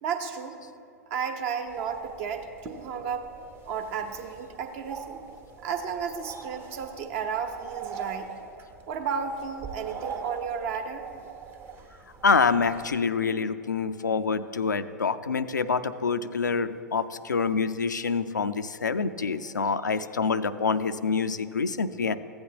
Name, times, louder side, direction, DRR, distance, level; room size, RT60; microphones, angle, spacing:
voice 1, 0.0-0.6 1.1-3.3 3.7-5.2 5.6-8.3 8.9-11.1, right 6 dB, 50° right, 6 dB, 1.0 m, -33 dB
sound 1, 1.7-13.0, right 6 dB, 25° right, 0.8 m, -42 dB
voice 2, 12.2-22.1, left 5 dB, 85° left, 11 dB, 0.4 m, -26 dB
15.0 x 8.6 x 2.9 m, 2.4 s
figure-of-eight pair, 100°, 10 cm